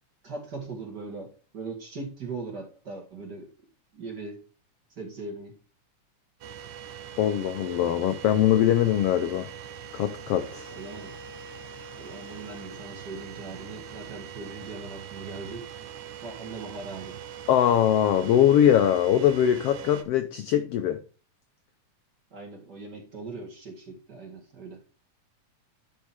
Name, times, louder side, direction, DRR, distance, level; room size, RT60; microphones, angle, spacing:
voice 1, 0.2-3.5 3.9-4.4 5.0-5.6 10.7-11.2 12.0-15.7 16.2-17.2 22.3-24.8, right 3 dB, 35° right, 2.3 m, -40 dB
sound 1, 6.4-20.0, right 8 dB, 75° right, 2.3 m, -42 dB
voice 2, 7.2-9.5 9.9-10.7 17.5-21.0, left 10 dB, 80° left, 1.4 m, -22 dB
10.5 x 5.3 x 3.6 m
omnidirectional pair, 3.5 m